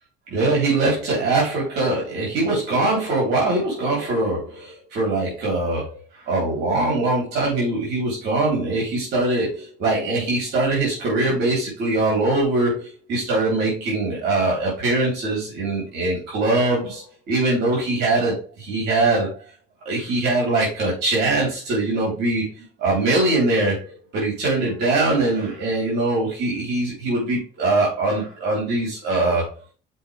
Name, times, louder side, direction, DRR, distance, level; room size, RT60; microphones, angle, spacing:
voice 1, 0.3-19.4 19.9-22.5 22.8-29.5, right 2 dB, 75° right, -4 dB, 3.9 m, -22 dB
7.7 x 4.9 x 3.5 m, 0.33 s
cardioid pair, 110°, 17 cm